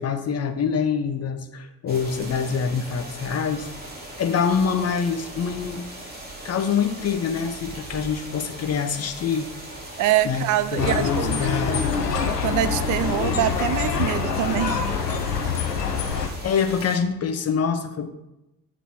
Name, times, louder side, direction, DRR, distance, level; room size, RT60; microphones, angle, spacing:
voice 1, 0.0-3.7 4.2-5.9 6.4-9.5 10.2-12.3 16.4-18.1, left 6 dB, 30° left, 7 dB, 0.9 m, -25 dB
sound 1, 1.9-17.0, right 2 dB, 20° right, 2.6 m, -39 dB
voice 2, 10.0-11.8 12.3-14.8, right 12 dB, 40° right, 14 dB, 0.5 m, -25 dB
sound 2, 10.8-16.3, left 6 dB, 85° left, 0.7 m, -25 dB
8.0 x 4.0 x 4.7 m, 0.92 s
figure-of-eight pair, 55°, 47 cm